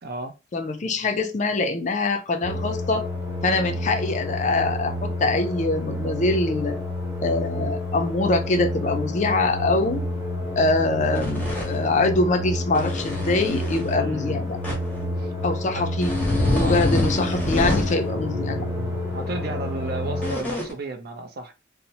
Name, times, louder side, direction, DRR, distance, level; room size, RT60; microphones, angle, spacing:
voice 1, 0.0-0.3 13.9-14.4 15.2-15.3 15.7-15.8 16.6-17.0 19.1-21.5, right 2 dB, 55° right, 0.5 m, -33 dB
voice 2, 0.5-3.1 3.4-6.8 7.2-10.0 10.6-14.6 15.4-16.1 16.5-18.7, left 2 dB, 40° left, 0.4 m, -24 dB
sound 1, 2.4-20.3, left 1 dB, 10° right, 1.0 m, -29 dB
sound 2, 11.1-11.8 12.7-13.9 14.6-14.7 16.0-18.0 20.2-20.7, left 1 dB, 10° left, 0.8 m, -26 dB
2.8 x 2.0 x 2.7 m
head